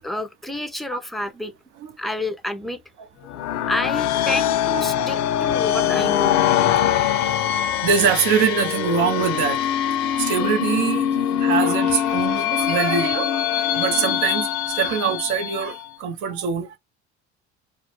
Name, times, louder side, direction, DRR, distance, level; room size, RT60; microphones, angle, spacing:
voice 1, 0.0-1.5 2.0-2.8 3.6-6.4 7.1-7.2, left 1 dB, ahead, 0.4 m, -29 dB
sound 1, 3.3-15.8, left 11 dB, 65° left, 0.5 m, -23 dB
voice 2, 4.4-5.6 6.8-7.4 7.8-16.8, right 7 dB, 70° right, 0.7 m, -24 dB
2.2 x 2.1 x 2.9 m
supercardioid pair, 80°, 31 cm